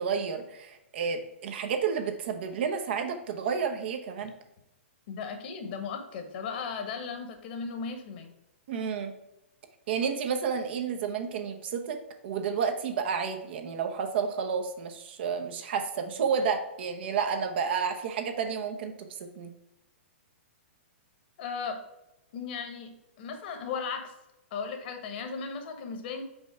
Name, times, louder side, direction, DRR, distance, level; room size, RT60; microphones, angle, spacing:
voice 1, 0.0-4.3 8.7-9.1 9.9-19.5, right 6 dB, 60° right, 5 dB, 0.9 m, -31 dB
voice 2, 5.1-8.3 21.4-21.8 22.3-24.1 24.5-26.2, left 5 dB, 55° left, 6 dB, 1.2 m, -36 dB
5.4 x 4.2 x 4.7 m, 0.92 s
hypercardioid pair, 135°, 7 cm